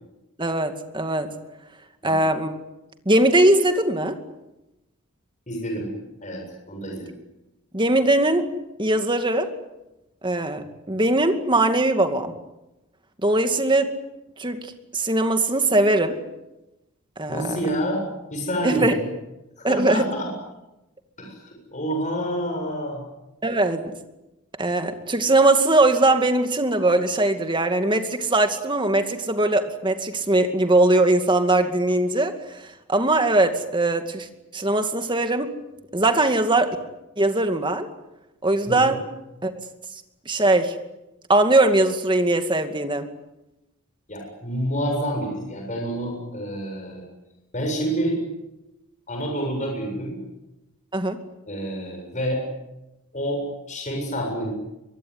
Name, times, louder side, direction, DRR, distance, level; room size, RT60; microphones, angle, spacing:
voice 1, 0.4-1.3 2.0-2.5 3.1-4.2 7.7-8.5 8.8-9.5 10.2-12.3 13.2-14.0 14.4-16.2 17.2-17.6 18.6-18.9 19.6-20.0 23.4-23.8 24.6-34.3 34.5-35.5 35.9-36.8 37.2-37.9 38.4-39.0 39.4-39.5 40.3-40.8 41.3-43.1 50.9-51.2, right 2 dB, 20° right, 7 dB, 2.3 m, -20 dB
voice 2, 5.5-5.9 6.2-7.2 17.3-18.0 18.3-19.0 19.6-20.3 21.2-23.0 38.7-38.9 44.1-47.0 47.5-48.2 49.1-50.2 51.5-52.4 53.1-53.4 53.7-54.5, equal, 35° left, 2 dB, 7.5 m, -28 dB
24.5 x 22.0 x 9.7 m, 0.96 s
head